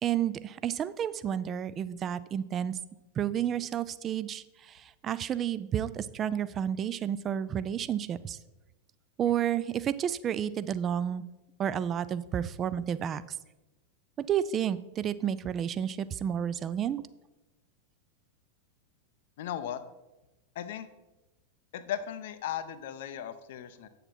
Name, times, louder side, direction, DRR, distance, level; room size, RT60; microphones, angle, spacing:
voice 1, 0.0-2.8 3.2-8.4 9.2-11.2 11.6-13.2 14.2-17.0, right 9 dB, 25° right, 16 dB, 0.3 m, -31 dB
voice 2, 19.4-19.8 20.6-20.9 21.7-23.9, left 10 dB, 55° left, 12 dB, 0.6 m, -36 dB
8.7 x 6.6 x 4.3 m, 1.0 s
figure-of-eight pair, 90°, 0 cm